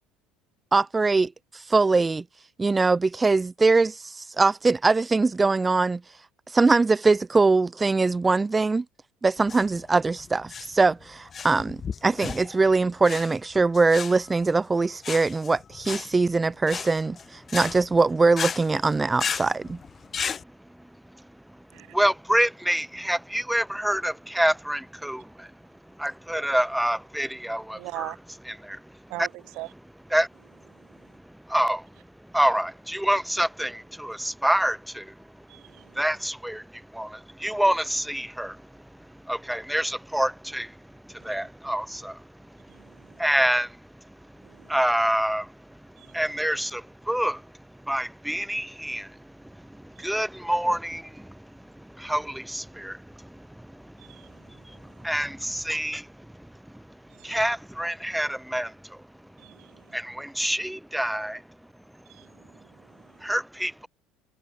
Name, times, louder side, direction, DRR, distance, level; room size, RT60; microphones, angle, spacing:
voice 1, 0.7-2.2 2.6-6.0 6.5-8.8 9.2-19.8, right 3 dB, 20° right, 1.2 m, -22 dB
sound 1, 9.4-20.4, left 7 dB, 35° left, 5.4 m, -35 dB
voice 2, 20.2-28.1 28.5-29.1 30.1-61.5 61.9-62.0 62.5-62.6 62.9-63.9, equal, 5° right, 0.6 m, -29 dB
voice 3, 27.7-28.2 29.1-29.7 30.7-31.2 35.5-36.0 41.2-41.5 42.7-43.2 44.4-44.8 46.0-46.2 50.0-50.2 54.0-55.1 57.1-57.4 59.4-60.0 62.1-63.3, right 23 dB, 70° right, 3.2 m, -43 dB
supercardioid pair, 80°, 0 cm